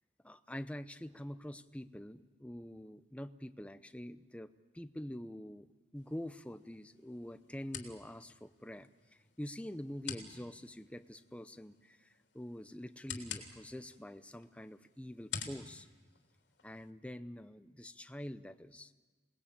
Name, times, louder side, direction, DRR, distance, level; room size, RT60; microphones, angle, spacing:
voice 1, 0.2-5.7 5.9-15.9 16.6-18.9, equal, 5° left, 11 dB, 0.7 m, -46 dB
sound 1, 5.9-16.9, left 7 dB, 90° left, 3.4 m, -50 dB
27.5 x 20.0 x 8.7 m, 1.3 s
head